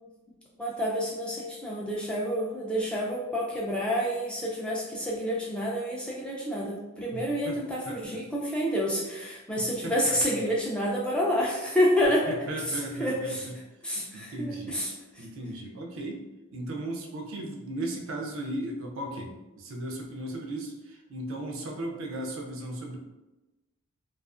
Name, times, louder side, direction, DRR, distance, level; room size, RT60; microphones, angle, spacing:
voice 1, 0.6-12.3 13.0-13.4 13.8-14.9, equal, 5° left, -5 dB, 0.3 m, -28 dB
voice 2, 7.1-7.6 7.8-8.2 9.6-10.4 12.3-13.6 13.9-14.8 15.2-16.2 16.5-23.0, right 1 dB, 65° right, 1 dB, 0.4 m, -36 dB
2.4 x 2.4 x 2.4 m, 1.1 s
head